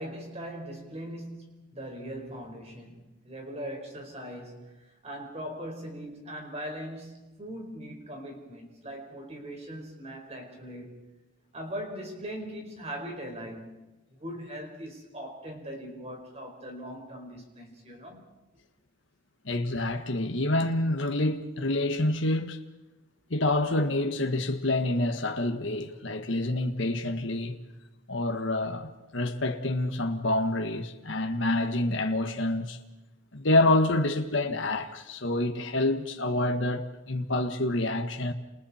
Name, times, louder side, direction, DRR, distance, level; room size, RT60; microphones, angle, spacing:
voice 1, 0.0-11.1 11.5-13.8 14.2-18.3, equal, 30° right, 4.8 m, -40 dB
voice 2, 19.4-22.6 23.3-27.6 28.1-32.8 33.3-38.3, left 2 dB, 70° left, 1.5 m, -27 dB
29.5 x 28.0 x 4.4 m
head